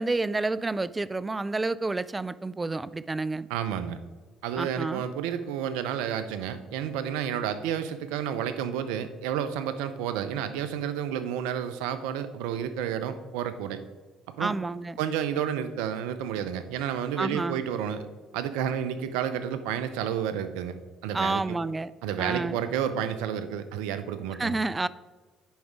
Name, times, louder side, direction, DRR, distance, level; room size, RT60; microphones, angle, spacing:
voice 1, 0.0-3.5 4.6-5.0 14.4-15.0 17.2-17.6 21.1-21.9 22.2-22.6 24.4-24.9, right 3 dB, 20° right, 18 dB, 0.3 m, -29 dB
voice 2, 3.5-4.0 4.4-13.8 14.4-14.6 15.0-18.1 18.3-20.8 21.0-21.6 22.0-24.5, right 9 dB, 80° right, 11 dB, 0.6 m, -30 dB
10.5 x 4.9 x 3.5 m, 1.3 s
hypercardioid pair, 60°, 0 cm